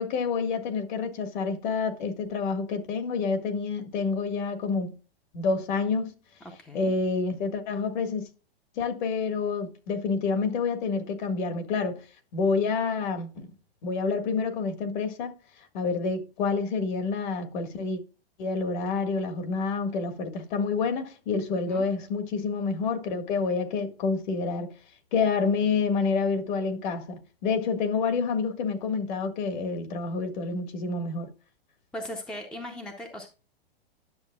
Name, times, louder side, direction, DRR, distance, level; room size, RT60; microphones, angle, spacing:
voice 1, 0.0-4.9 5.3-6.1 6.7-8.3 8.8-12.0 12.3-13.5 13.8-15.3 15.7-18.0 18.4-24.7 25.1-31.3, left 4 dB, 50° left, 1.7 m, -28 dB
voice 2, 6.6-6.9 21.7-21.8 31.9-33.3, left 1 dB, 5° left, 0.6 m, -38 dB
10.5 x 6.7 x 2.3 m
hypercardioid pair, 155°, 31 cm